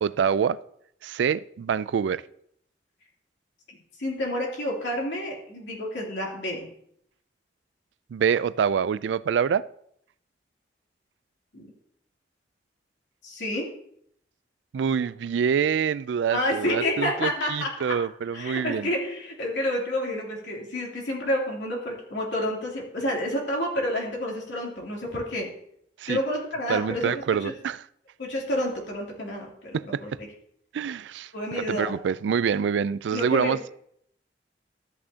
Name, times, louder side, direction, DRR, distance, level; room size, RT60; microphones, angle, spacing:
voice 1, 0.0-0.6 1.0-2.2 8.1-9.6 14.7-18.9 26.0-26.2 26.7-27.8 29.7-30.2 30.7-31.3 31.6-33.8, right 7 dB, 85° right, 0.3 m, -26 dB
voice 2, 3.7-6.7 11.5-11.7 13.2-13.7 16.3-17.9 18.3-25.5 26.1-27.5 28.2-30.3 31.3-31.9 33.1-33.5, left 1 dB, 85° left, 2.9 m, -29 dB
13.0 x 8.7 x 2.8 m
head